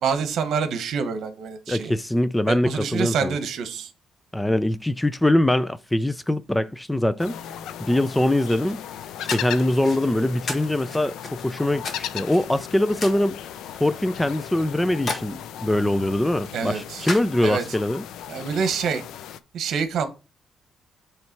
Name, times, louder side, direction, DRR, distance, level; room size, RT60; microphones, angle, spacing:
voice 1, 0.0-1.9 2.5-3.9 16.5-17.1 17.4-17.6 18.3-19.0 19.5-20.1, right 6 dB, 70° right, 1.1 m, -26 dB
voice 2, 1.7-3.4 4.3-7.4 7.8-8.8 9.2-11.2 11.4-13.4 13.8-18.0, left 1 dB, 10° left, 0.3 m, -23 dB
sound 1, 7.2-19.4, left 10 dB, 90° left, 0.5 m, -37 dB
sound 2, 8.5-17.8, left 3 dB, 40° left, 1.4 m, -38 dB
7.5 x 3.2 x 4.6 m
cardioid pair, 120°, 0 cm